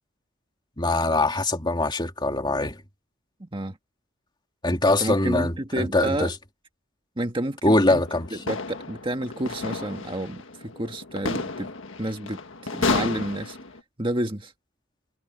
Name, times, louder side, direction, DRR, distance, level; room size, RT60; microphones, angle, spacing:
voice 1, 0.8-2.8 4.6-6.3 7.6-8.3, left 2 dB, 20° left, 2.8 m, -23 dB
voice 2, 3.4-3.8 5.0-6.3 7.2-8.0 8.3-11.7 12.0-13.6 14.0-14.5, right 1 dB, 25° right, 1.7 m, -30 dB
sound 1, 7.9-13.8, left 3 dB, 65° left, 1.7 m, -32 dB
head